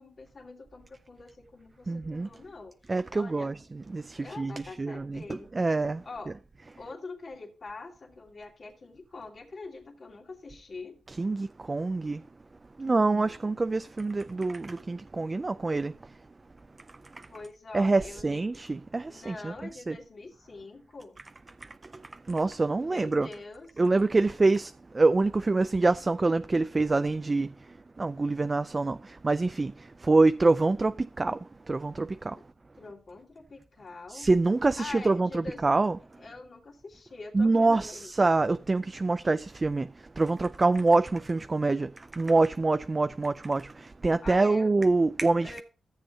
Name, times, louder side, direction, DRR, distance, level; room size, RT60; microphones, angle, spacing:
voice 1, 0.0-3.5 4.1-5.5 6.0-6.4 6.8-11.0 12.8-13.4 17.3-18.3 19.1-21.2 22.8-23.7 32.8-34.3 34.7-35.6 36.2-38.1 44.2-44.7 45.2-45.6, left 3 dB, 50° left, 2.5 m, -44 dB
voice 2, 1.9-2.3 2.9-6.0 11.2-12.2 12.8-16.1 16.9-17.3 17.7-19.5 19.9-20.0 21.6-23.3 23.8-32.4 34.1-36.0 37.3-45.6, right 3 dB, 30° right, 0.4 m, -26 dB
13.5 x 7.5 x 2.8 m
cardioid pair, 75°, 0 cm